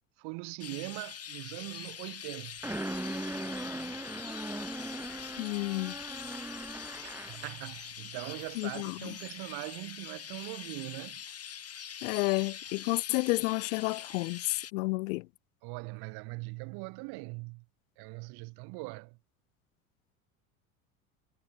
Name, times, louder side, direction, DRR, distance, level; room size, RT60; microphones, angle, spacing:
voice 1, 0.2-2.6 7.0-11.2 15.6-17.6 18.0-19.2, right 29 dB, 60° right, 3.3 m, -41 dB
Chirp tweet, 0.6-14.7, left 8 dB, 35° left, 4.1 m, -44 dB
sound 1, 2.6-7.5, right 1 dB, 5° right, 4.0 m, -39 dB
voice 2, 5.4-5.9 8.6-9.1 12.0-15.2, left 27 dB, 65° left, 0.7 m, -31 dB
hypercardioid pair, 75°, 43 cm